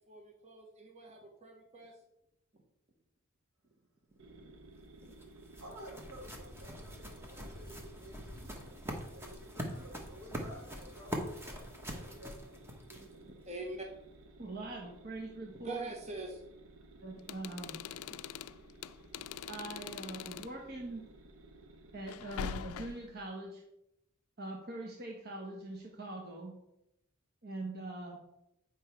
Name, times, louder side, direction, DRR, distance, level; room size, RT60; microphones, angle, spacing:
voice 1, 0.1-2.0 4.3-4.5 5.0-5.2 12.9-13.9 15.6-16.4 17.9-18.2, right 2 dB, 30° right, 1 dB, 1.2 m, -45 dB
sound 1, 4.2-22.5, right 2 dB, 65° right, 0.9 m, -56 dB
sound 2, 4.7-13.3, equal, 10° right, 1.1 m, -44 dB
voice 2, 5.6-8.8 9.1-11.7 11.9-12.6, equal, 85° right, -1 dB, 2.6 m, -52 dB
voice 3, 11.9-12.3 12.9-13.1 14.4-15.9 17.0-17.8 19.5-21.0 21.9-23.6 24.4-26.5 27.4-28.2, right 2 dB, 45° right, 0 dB, 1.1 m, -43 dB
sound 3, 17.2-20.6 22.1-23.2, left 8 dB, 75° left, 0.3 m, -43 dB
8.9 x 5.3 x 4.5 m, 0.84 s
head